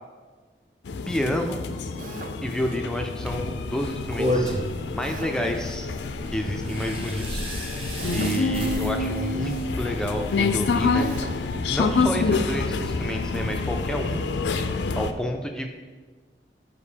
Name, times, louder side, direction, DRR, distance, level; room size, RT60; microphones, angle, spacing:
sound 1, 0.9-15.1, left 3 dB, 85° left, 0.4 m, -27 dB
voice 1, 1.1-1.6 2.4-4.6 4.9-6.0 6.3-7.4 8.1-11.1 11.6-14.2 15.0-15.7, equal, 5° left, 3 dB, 0.3 m, -29 dB
Drill, 2.0-2.4 5.0-5.4 8.0-8.4 11.0-11.4, right 2 dB, 50° right, 0.5 m, -39 dB
sound 2, 3.3-14.6, equal, 30° right, 0.9 m, -34 dB
5.2 x 4.6 x 5.0 m, 1.4 s
head